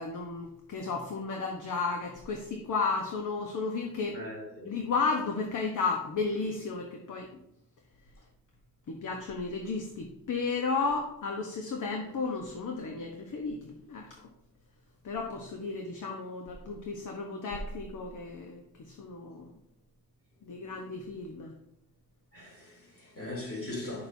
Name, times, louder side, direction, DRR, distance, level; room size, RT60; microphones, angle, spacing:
voice 1, 0.0-4.2 4.6-7.3 8.9-14.2 15.0-19.5 20.4-21.5, left 4 dB, 50° left, 1.1 m, -33 dB
voice 2, 4.1-4.7 22.3-24.1, left 1 dB, 35° left, 3.3 m, -40 dB
9.8 x 6.8 x 2.7 m
cardioid pair, 140°, 39 cm